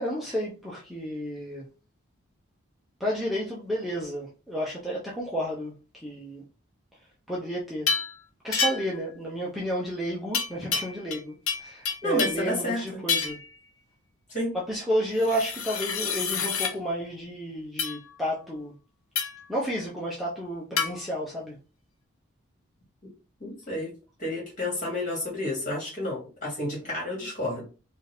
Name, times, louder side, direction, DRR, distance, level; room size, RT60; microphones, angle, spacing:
voice 1, 0.0-1.6 3.0-6.4 7.3-7.9 8.4-13.4 14.5-18.7 19.5-21.6, equal, ahead, -5 dB, 0.7 m, -31 dB
sound 1, 7.9-8.1 8.5-9.0 10.3-11.2 11.5-12.5 13.1-13.5 15.2-16.7 17.8-18.0 19.1-19.5 20.8-20.9, left 5 dB, 85° left, 0.8 m, -28 dB
voice 2, 12.0-12.8 14.3-14.5 23.4-23.9 24.2-27.6, left 1 dB, 35° left, -2 dB, 2.2 m, -30 dB
4.5 x 2.6 x 3.5 m, 0.33 s
head